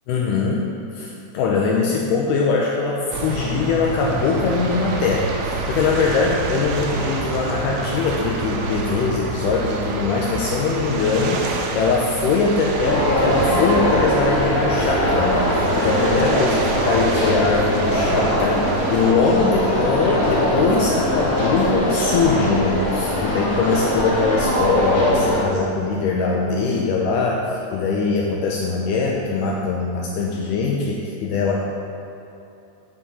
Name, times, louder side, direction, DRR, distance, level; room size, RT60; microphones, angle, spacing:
voice 1, 0.1-0.6 0.9-15.5 15.8-18.6 18.9-31.7, left 4 dB, 80° left, -2 dB, 2.1 m, -22 dB
sound 1, 3.1-19.1, right 3 dB, 80° right, 1.5 m, -28 dB
sound 2, 12.8-25.4, equal, 60° left, 0.9 m, -21 dB
8.7 x 5.8 x 4.0 m, 2.7 s
omnidirectional pair, 3.9 m